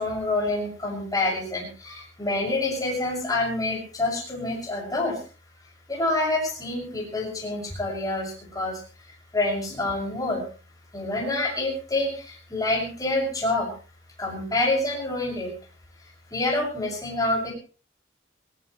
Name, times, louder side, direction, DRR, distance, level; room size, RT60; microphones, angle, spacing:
voice 1, 0.0-5.2 5.9-8.8 9.3-10.4 10.9-13.7 14.2-15.5 16.3-17.5, left 2 dB, 20° left, -2 dB, 6.2 m, -27 dB
19.0 x 18.5 x 3.2 m, 0.37 s
head